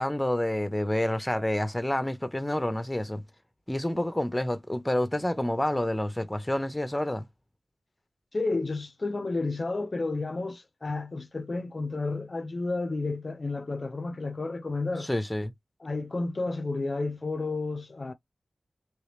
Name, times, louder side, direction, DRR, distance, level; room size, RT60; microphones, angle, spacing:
voice 1, 0.0-3.2 3.7-7.3 15.0-15.5, left 1 dB, 15° left, 0.7 m, -28 dB
voice 2, 8.3-15.1 15.8-18.1, left 3 dB, 50° left, 0.4 m, -31 dB
3.2 x 2.8 x 3.2 m
wide cardioid pair, 60°, 0 cm